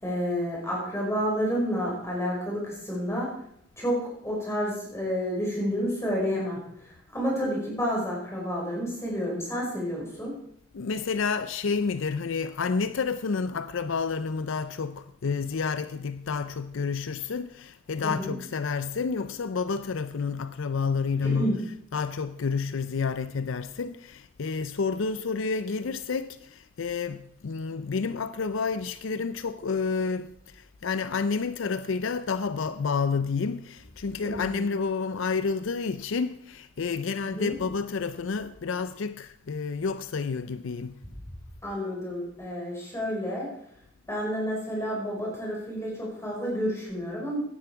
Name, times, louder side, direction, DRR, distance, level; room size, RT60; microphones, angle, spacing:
voice 1, 0.0-3.3 3.8-10.3 18.0-18.3 21.2-21.6 34.2-34.6 37.2-37.6 41.6-43.5 44.1-47.4, equal, 15° left, 5.4 m, -30 dB
voice 2, 10.7-41.0, left 5 dB, 65° left, 0.5 m, -30 dB
16.5 x 10.5 x 4.6 m
head